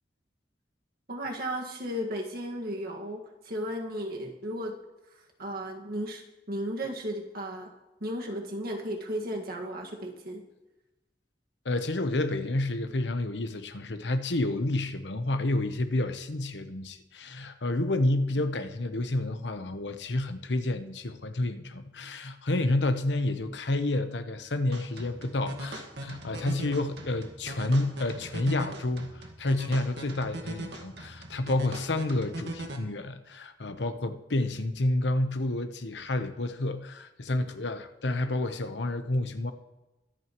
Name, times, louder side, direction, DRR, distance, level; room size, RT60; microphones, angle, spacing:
voice 1, 1.1-4.7 5.4-7.7 8.0-10.4, equal, 60° right, 1 dB, 1.8 m, -35 dB
voice 2, 11.6-39.5, left 2 dB, 85° left, 8 dB, 1.0 m, -29 dB
sound 1, 24.7-32.8, right 1 dB, 80° right, 1.7 m, -40 dB
23.5 x 9.0 x 3.1 m, 1.0 s
head